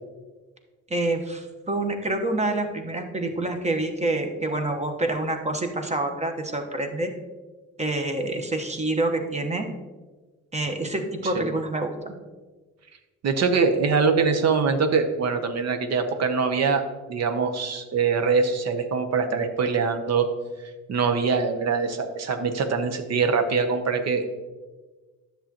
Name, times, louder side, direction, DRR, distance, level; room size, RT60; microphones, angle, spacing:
voice 1, 0.9-7.1 7.8-9.7 10.5-12.1, right 2 dB, 20° right, 5 dB, 1.1 m, -27 dB
voice 2, 13.2-16.8 17.1-20.3 20.9-24.3, right 5 dB, 60° right, 7 dB, 0.9 m, -23 dB
10.0 x 7.1 x 2.9 m, 1.3 s
cardioid pair, 90°, 30 cm